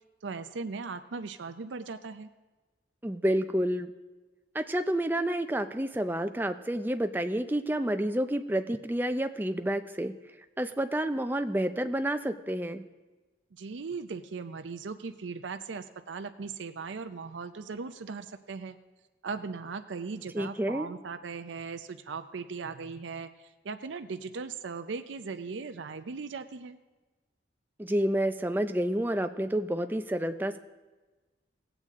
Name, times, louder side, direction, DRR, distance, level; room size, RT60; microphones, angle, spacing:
voice 1, 0.2-2.3 13.5-18.8 19.2-26.8, right 4 dB, 85° right, 8 dB, 0.5 m, -38 dB
voice 2, 3.0-3.9 4.5-10.1 10.6-12.8 20.3-20.9 27.8-30.6, right 1 dB, 10° right, 8 dB, 0.4 m, -29 dB
18.5 x 8.0 x 3.6 m, 1.2 s
head